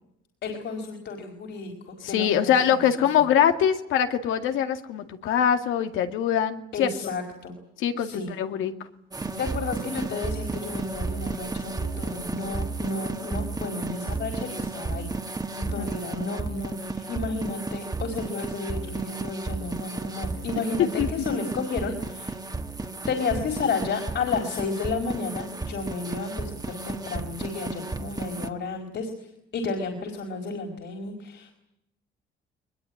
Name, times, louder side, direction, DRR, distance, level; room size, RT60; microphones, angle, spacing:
voice 1, 0.4-2.8 3.2-3.3 6.7-7.5 8.0-8.3 9.4-15.1 15.6-22.3 23.1-31.5, left 4 dB, 65° left, 3 dB, 4.9 m, -32 dB
voice 2, 2.0-7.1 7.8-8.7 15.8-15.9 16.2-16.4 20.8-21.1, left 9 dB, 85° left, 7 dB, 2.1 m, -23 dB
sound 1, 9.1-28.5, right 3 dB, 20° right, 1.8 m, -33 dB
21.5 x 21.0 x 9.8 m, 0.82 s
cardioid pair, 90°, 20 cm